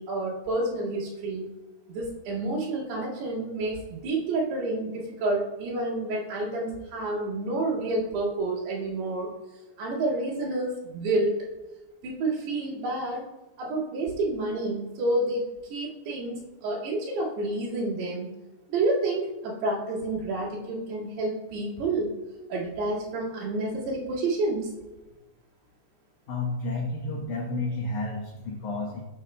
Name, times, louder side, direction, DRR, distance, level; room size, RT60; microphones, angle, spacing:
voice 1, 0.0-1.5 1.9-9.3 9.8-11.4 12.0-13.2 13.6-18.3 18.7-22.1 22.5-24.7, right 2 dB, 80° right, -5 dB, 4.1 m, -29 dB
voice 2, 26.3-29.0, left 2 dB, 85° left, 0 dB, 1.7 m, -31 dB
12.0 x 6.8 x 2.2 m, 1.1 s
omnidirectional pair, 4.7 m